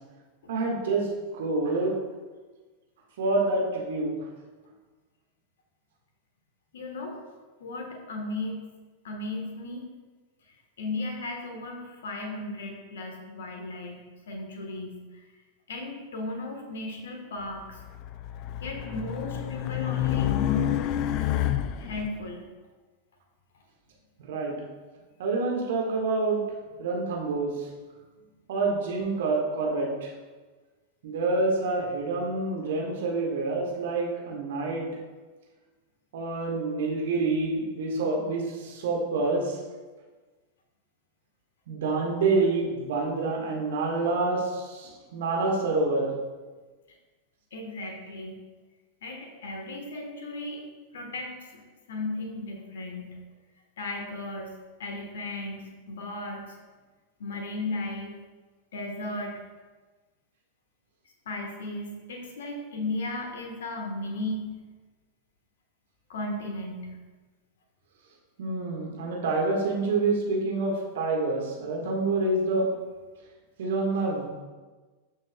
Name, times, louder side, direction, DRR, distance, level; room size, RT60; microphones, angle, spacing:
voice 1, 0.5-2.0 3.2-4.2 24.2-24.5 25.2-26.4 26.8-27.5 28.5-30.1 31.0-34.9 36.1-39.5 41.7-46.1 68.4-72.7 73.6-74.3, right 3 dB, 60° right, 0 dB, 1.6 m, -27 dB
voice 2, 6.7-7.2 7.6-8.7 9.0-9.9 10.5-15.2 15.7-17.8 18.6-20.8 21.8-22.5 47.5-48.4 49.0-50.6 50.9-51.6 51.9-53.2 53.8-54.5 54.8-56.6 57.2-58.2 58.7-59.4 61.2-64.5 66.1-67.0, left 2 dB, 60° left, 3 dB, 1.4 m, -35 dB
Race car auto racing, 17.7-22.1, left 12 dB, 40° left, 0.4 m, -29 dB
12.0 x 6.2 x 2.3 m, 1.3 s
figure-of-eight pair, 90°, 0 cm